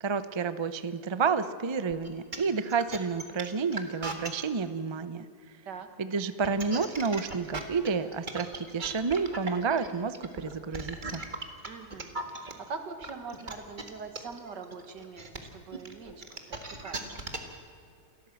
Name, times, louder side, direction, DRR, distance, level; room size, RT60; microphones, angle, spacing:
voice 1, 0.0-5.2 6.0-11.2, right 5 dB, 45° right, 13 dB, 0.3 m, -30 dB
sound 1, 1.9-4.4 6.3-12.5 13.0-17.6, right 3 dB, 30° right, 1.8 m, -37 dB
voice 2, 11.6-17.0, right 5 dB, 80° right, 7 dB, 2.3 m, -43 dB
28.0 x 14.0 x 7.7 m, 2.4 s
omnidirectional pair, 1.8 m